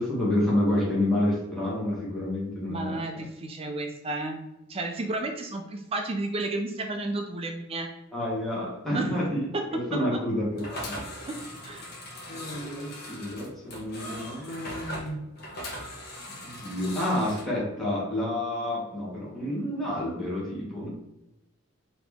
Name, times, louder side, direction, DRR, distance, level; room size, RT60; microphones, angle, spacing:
voice 1, 0.0-3.0 8.1-9.5 9.7-11.0 12.3-15.2 16.4-20.9, left 1 dB, ahead, -7 dB, 1.5 m, -29 dB
voice 2, 2.7-4.4 4.7-7.9 8.9-9.1 9.5-9.6 9.9-10.2 11.3-11.9, right 2 dB, 30° right, 4 dB, 0.4 m, -32 dB
sound 1, 10.5-17.4, equal, 50° left, 1.1 m, -40 dB
4.2 x 2.9 x 3.5 m, 0.91 s
head